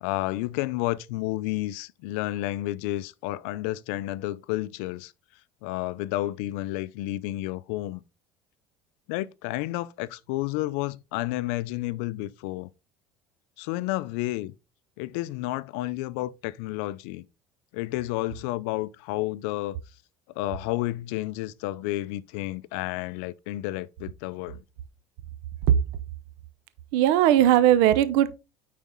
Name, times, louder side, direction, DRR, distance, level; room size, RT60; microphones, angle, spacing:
voice 1, 0.0-5.1 5.6-8.0 9.1-12.7 13.6-14.5 15.0-17.2 17.7-19.8 20.4-24.6, left 17 dB, 85° left, 0.5 m, -31 dB
voice 2, 26.9-28.3, right 11 dB, 80° right, 0.7 m, -18 dB
9.5 x 4.2 x 3.7 m
cardioid pair, 115°, 7 cm